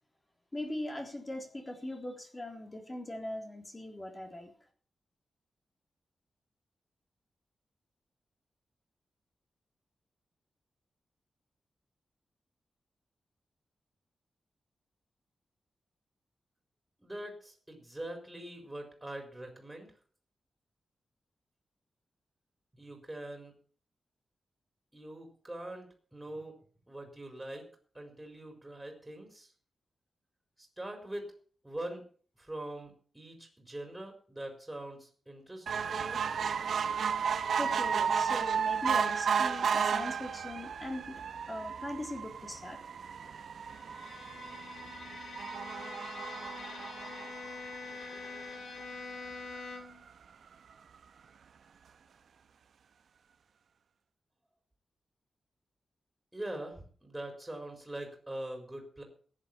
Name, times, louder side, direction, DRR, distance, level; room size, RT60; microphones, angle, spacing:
voice 1, 0.5-4.5 37.6-41.2 41.5-42.8, left 1 dB, 20° left, 4 dB, 3.5 m, -40 dB
voice 2, 17.0-19.9 22.7-23.5 24.9-25.9 26.1-26.6 26.9-27.7 27.9-29.5 30.8-31.3 31.6-32.0 32.4-36.3 56.3-59.0, right 1 dB, 10° right, 3 dB, 4.6 m, -43 dB
sound 1, 35.7-48.3 48.8-48.9 49.2-49.3 49.6-49.7, right 7 dB, 75° right, 1.2 m, -33 dB
Bowed string instrument, 43.6-50.1, left 4 dB, 70° left, 2.9 m, -45 dB
14.5 x 10.5 x 6.0 m, 0.43 s
wide cardioid pair, 145°, 0 cm